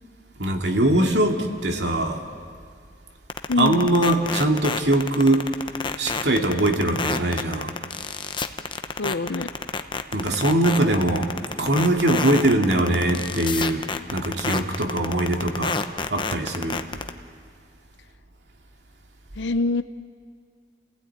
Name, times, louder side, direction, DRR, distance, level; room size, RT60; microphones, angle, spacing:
voice 1, 0.4-2.2 3.6-5.5 5.9-7.8 10.1-11.3 11.6-15.8 16.1-16.8, right 1 dB, 75° right, 3 dB, 2.4 m, -22 dB
sound 1, 3.3-17.1, left 4 dB, 30° left, 0.9 m, -27 dB
voice 2, 3.5-3.9 9.0-9.5 19.4-19.8, left 3 dB, 85° left, 12 dB, 0.7 m, -24 dB
29.5 x 16.0 x 9.4 m, 2.2 s
head